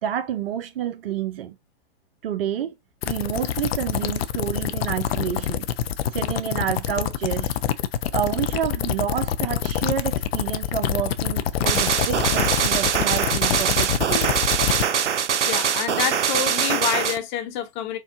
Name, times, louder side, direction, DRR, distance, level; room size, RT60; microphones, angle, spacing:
voice 1, 0.0-1.6 2.2-2.7 3.1-5.7 6.1-7.6 8.1-14.3, right 10 dB, 55° right, 0.9 m, -29 dB
sound 1, 3.0-14.8, left 10 dB, 60° left, 0.6 m, -26 dB
sound 2, 11.7-17.2, right 8 dB, 85° right, 0.6 m, -23 dB
voice 2, 15.4-18.0, left 9 dB, 40° left, 1.1 m, -27 dB
4.5 x 2.4 x 3.6 m
hypercardioid pair, 120°, 34 cm